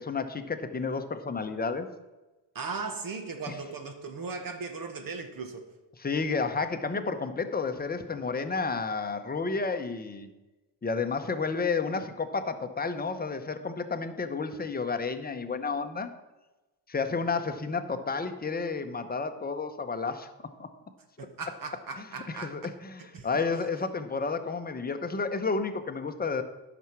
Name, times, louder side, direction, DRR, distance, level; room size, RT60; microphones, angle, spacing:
voice 1, 0.0-1.9 3.5-3.6 6.0-10.3 10.8-16.1 16.9-20.3 20.6-20.7 22.3-26.4, left 4 dB, 20° left, 8 dB, 0.8 m, -31 dB
voice 2, 2.5-5.7 21.2-22.6 23.1-23.3, right 4 dB, 50° right, 6 dB, 1.3 m, -37 dB
10.5 x 6.1 x 5.9 m, 1.1 s
cardioid pair, 115°, 42 cm